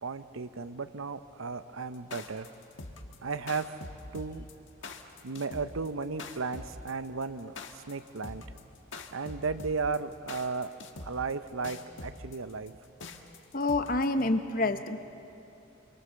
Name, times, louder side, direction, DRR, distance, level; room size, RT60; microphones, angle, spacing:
voice 1, 0.0-2.5 3.2-3.7 4.1-4.5 5.2-8.4 9.1-10.7 11.0-12.7, right 4 dB, 90° right, 12 dB, 0.8 m, -35 dB
sound 1, 1.9-14.2, left 3 dB, 70° left, 1.6 m, -44 dB
voice 2, 13.5-15.0, left 2 dB, 45° left, 9 dB, 1.0 m, -27 dB
27.0 x 23.0 x 7.0 m, 2.8 s
head